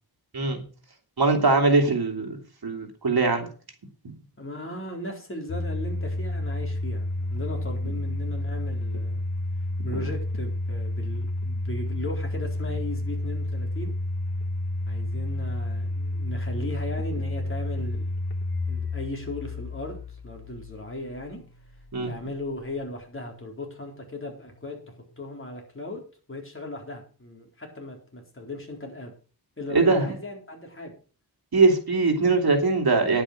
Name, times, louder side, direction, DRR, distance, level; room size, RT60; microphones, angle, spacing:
voice 1, 1.2-3.5 9.9-10.0 21.9-22.1 29.7-30.1 31.5-33.2, right 3 dB, 70° right, 4 dB, 2.8 m, -22 dB
voice 2, 4.4-9.2 9.8-13.9 14.9-18.1 18.7-21.4 22.1-26.0 26.3-29.1 29.6-30.9, left 1 dB, 30° left, 1 dB, 4.1 m, -37 dB
Domestic sounds home sounds, 5.5-22.4, left 2 dB, 75° left, 1.3 m, -30 dB
10.5 x 8.6 x 6.3 m, 0.38 s
wide cardioid pair, 95°, 39 cm